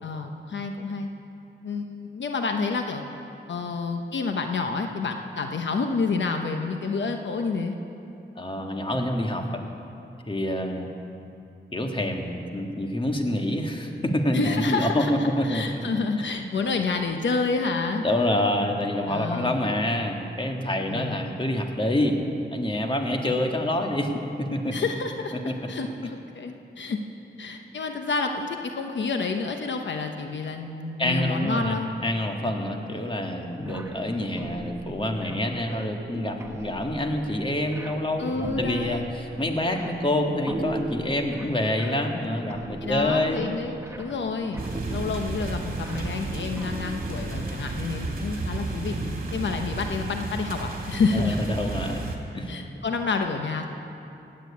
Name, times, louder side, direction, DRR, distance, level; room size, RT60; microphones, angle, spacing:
voice 1, 0.0-1.1 1.6-3.0 3.5-7.7 14.3-15.1 15.4-18.0 19.1-19.6 20.9-21.2 24.7-25.3 25.7-27.0 27.4-31.9 38.2-39.0 42.8-49.0 49.3-51.4 52.5-53.7, left 4 dB, 75° left, 4 dB, 1.0 m, -29 dB
voice 2, 8.3-9.6 10.3-10.9 11.7-15.8 16.3-16.4 18.0-22.2 22.5-24.1 24.4-24.8 25.4-25.5 26.0-26.1 31.0-31.8 32.0-43.5 51.1-52.0 52.3-52.5, left 1 dB, 25° left, 3 dB, 1.7 m, -27 dB
sound 1, 33.6-47.4, right 1 dB, 15° right, 1.2 m, -39 dB
sound 2, 44.6-52.2, right 2 dB, 50° right, 2.7 m, -32 dB
17.0 x 9.2 x 8.5 m, 2.8 s
cardioid pair, 75°, 19 cm